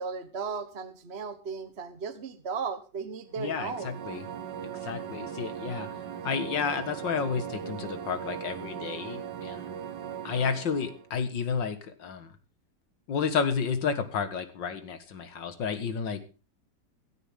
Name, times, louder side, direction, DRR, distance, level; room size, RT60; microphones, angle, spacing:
voice 1, 0.0-3.9, right 5 dB, 40° right, 9 dB, 1.4 m, -36 dB
sound 1, 3.3-11.1, right 8 dB, 70° right, 1.7 m, -39 dB
voice 2, 3.4-4.3 4.8-5.9 6.2-9.7 10.2-12.4 13.1-16.2, left 6 dB, 75° left, 11 dB, 2.3 m, -31 dB
16.5 x 13.0 x 3.6 m, 0.35 s
omnidirectional pair, 2.0 m